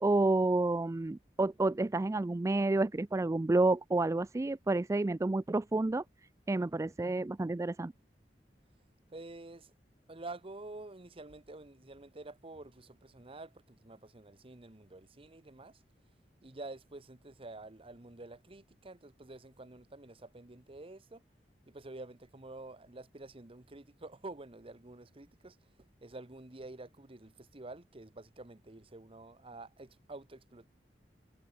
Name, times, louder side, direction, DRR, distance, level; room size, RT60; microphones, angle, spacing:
voice 1, 0.0-6.0 6.5-7.9, right 2 dB, 15° right, 0.3 m, -29 dB
voice 2, 9.1-9.7 10.1-15.8 16.4-21.2 21.7-25.6 26.0-30.7, right 2 dB, 35° right, 1.1 m, -49 dB
head